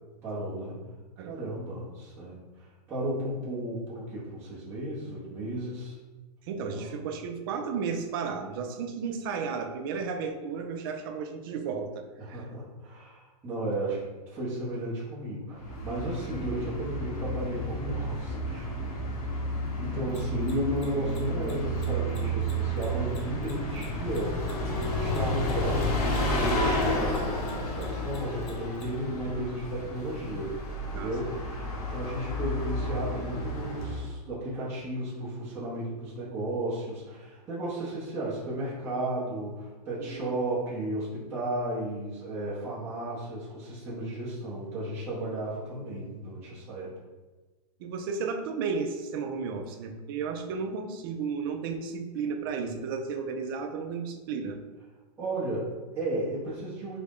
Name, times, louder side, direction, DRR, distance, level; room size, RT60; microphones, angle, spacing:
voice 1, 0.2-0.8 1.2-6.0 6.6-6.9 12.2-14.0 14.3-18.9 19.8-24.5 24.9-46.9 55.2-57.0, right 1 dB, 10° right, -10 dB, 0.8 m, -34 dB
voice 2, 6.5-12.4 30.9-31.1 40.0-40.3 47.8-54.6, right 5 dB, 35° right, 5 dB, 0.3 m, -33 dB
Bus, 15.6-34.1, equal, 65° left, 0.9 m, -31 dB
Mechanisms, 20.1-26.8 27.1-28.8, left 5 dB, 25° left, 0.6 m, -52 dB
3.6 x 2.1 x 3.5 m, 1.2 s
supercardioid pair, 160°, 21 cm